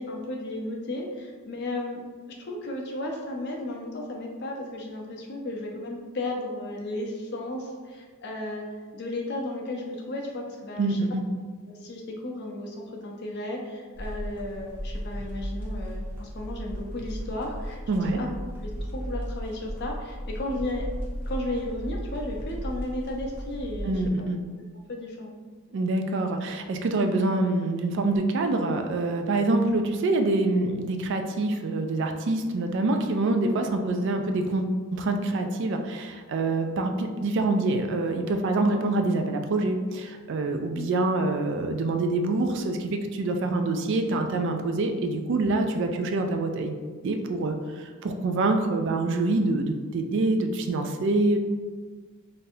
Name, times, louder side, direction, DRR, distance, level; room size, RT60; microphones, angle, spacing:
voice 1, 0.0-2.0 2.4-8.6 8.9-11.0 11.7-18.3 18.6-20.9 21.3-24.3 24.9-25.3 40.7-40.9, left 1 dB, 50° left, 0 dB, 0.6 m, -34 dB
voice 2, 10.8-11.2 17.9-18.2 23.8-24.4 25.7-46.8 47.0-51.4, right 2 dB, 55° right, 5 dB, 0.3 m, -26 dB
sound 1, 13.9-24.1, equal, 10° right, 0.8 m, -35 dB
3.9 x 2.6 x 2.7 m, 1.5 s
head